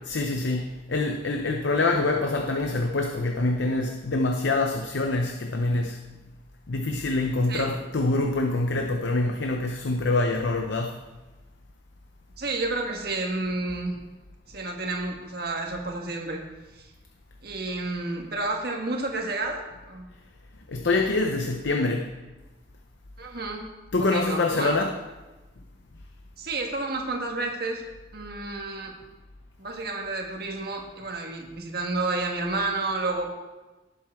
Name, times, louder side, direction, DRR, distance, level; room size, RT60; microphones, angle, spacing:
voice 1, 0.1-6.0 6.7-11.0 20.7-22.1 23.9-25.0, left 2 dB, 65° left, 4 dB, 0.7 m, -25 dB
voice 2, 12.4-13.9 14.5-16.4 16.7-16.9 17.4-20.1 23.2-23.6 24.0-24.8 26.4-27.8 28.1-28.9 29.6-33.3, right 2 dB, 50° right, 1 dB, 1.5 m, -30 dB
18.5 x 7.5 x 3.6 m, 1.1 s
head